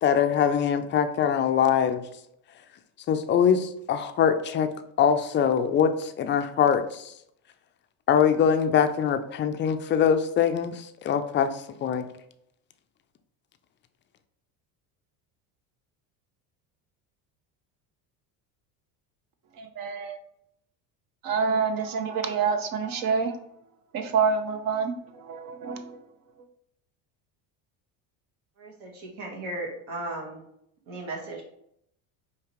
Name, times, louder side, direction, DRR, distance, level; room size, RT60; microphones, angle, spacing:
voice 1, 0.0-2.0 3.1-4.7 5.0-7.1 8.1-11.5 11.8-12.1, left 8 dB, 30° left, 9 dB, 0.3 m, -23 dB
voice 2, 19.5-20.2 21.2-23.4 23.9-26.0, right 5 dB, 50° right, 7 dB, 0.7 m, -27 dB
voice 3, 28.6-30.4 30.9-31.4, right 2 dB, 65° right, -1 dB, 1.7 m, -36 dB
4.8 x 2.9 x 3.0 m, 0.74 s
supercardioid pair, 105°, 43 cm